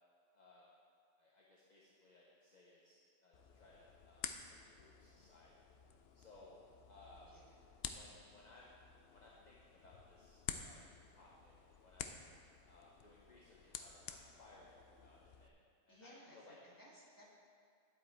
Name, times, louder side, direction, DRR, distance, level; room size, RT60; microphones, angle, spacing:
voice 1, 0.3-0.6 1.2-5.5 6.1-7.3 7.9-8.7 9.1-10.8 11.1-12.1 12.6-15.5 15.9-16.6, left 2 dB, 45° left, -4 dB, 1.1 m, -63 dB
sound 1, 3.3-15.5, left 7 dB, 70° left, 0.8 m, -52 dB
voice 2, 7.3-7.7 15.9-17.2, equal, 20° left, -5 dB, 1.8 m, -60 dB
10.5 x 7.9 x 4.5 m, 2.3 s
omnidirectional pair, 1.1 m